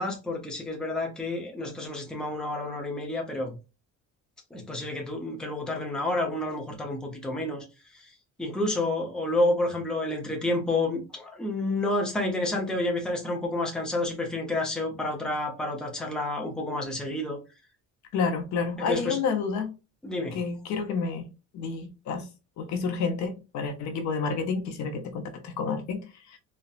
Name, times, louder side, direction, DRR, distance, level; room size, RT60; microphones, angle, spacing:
voice 1, 0.0-3.5 4.5-7.6 7.9-8.1 8.4-17.4 18.9-19.2 20.0-20.4, left 2 dB, ahead, 0.6 m, -29 dB
voice 2, 18.1-19.7 20.3-21.3 21.5-22.3 22.6-26.4, left 5 dB, 60° left, 0.7 m, -30 dB
4.0 x 2.1 x 2.4 m
cardioid pair, 150°, 32 cm